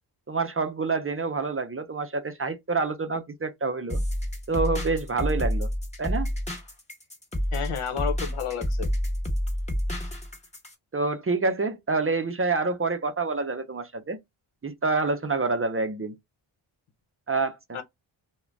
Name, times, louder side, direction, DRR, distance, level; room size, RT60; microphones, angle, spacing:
voice 1, 0.3-4.0 4.5-5.7 6.0-6.3 10.9-14.2 14.6-16.1 17.3-17.8, right 3 dB, 30° right, 0.5 m, -27 dB
sound 1, 3.9-10.7, equal, 15° left, 1.1 m, -29 dB
voice 2, 7.5-8.9 17.7-17.8, left 8 dB, 85° left, 0.8 m, -31 dB
2.5 x 2.1 x 3.2 m
wide cardioid pair, 75°, 50 cm